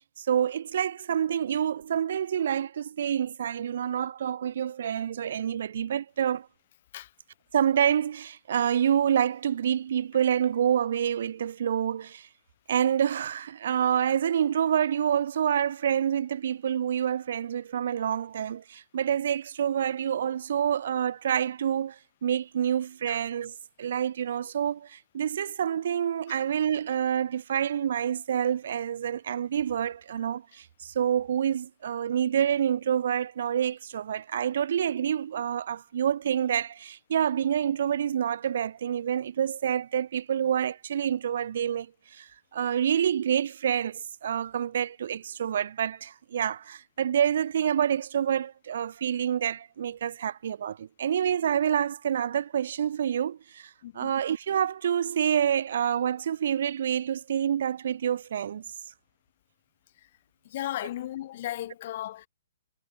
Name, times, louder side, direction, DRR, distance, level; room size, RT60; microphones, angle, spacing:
voice 1, 0.2-6.5 7.5-12.3 12.7-58.6, right 9 dB, 60° right, 0.5 m, -27 dB
voice 2, 60.5-62.3, left 13 dB, 50° left, 1.6 m, -35 dB
hypercardioid pair, 130°, 0 cm